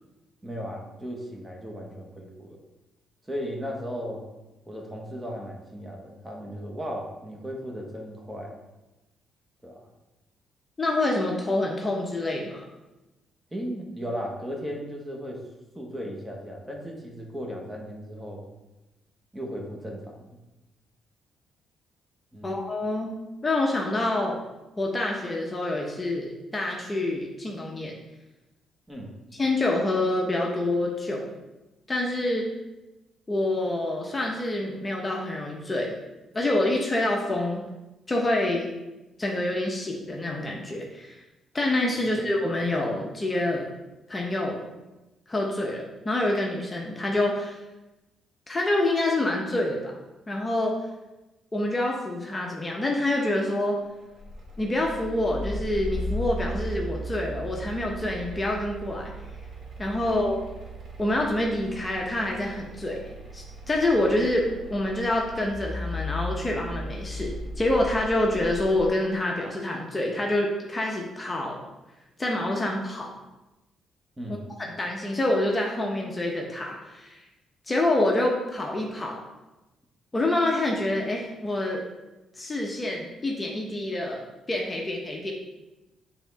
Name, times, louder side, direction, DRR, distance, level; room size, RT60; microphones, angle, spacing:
voice 1, 0.4-2.6 3.3-4.2 4.7-8.6 9.6-9.9 13.5-15.5 15.7-18.4 19.3-20.4 22.3-22.6 28.9-29.1 42.0-42.1 74.2-74.4, equal, 15° right, 0 dB, 1.3 m, -36 dB
voice 2, 10.8-12.7 22.4-23.2 23.4-24.4 24.8-28.0 29.3-31.3 31.9-32.5 33.3-36.0 36.3-37.6 38.1-38.7 39.2-41.2 41.5-43.7 44.1-44.7 45.3-47.6 48.5-50.0 50.3-50.8 51.5-53.8 54.6-59.1 59.8-60.4 61.0-63.0 63.3-71.6 72.2-73.1 74.8-77.2 77.7-79.2 80.1-81.8 82.4-85.3, left 1 dB, 20° left, -1 dB, 0.9 m, -27 dB
sound 1, 54.2-68.9, equal, 45° right, 1.4 m, -36 dB
6.9 x 3.6 x 4.1 m, 1.0 s
cardioid pair, 90°, 0 cm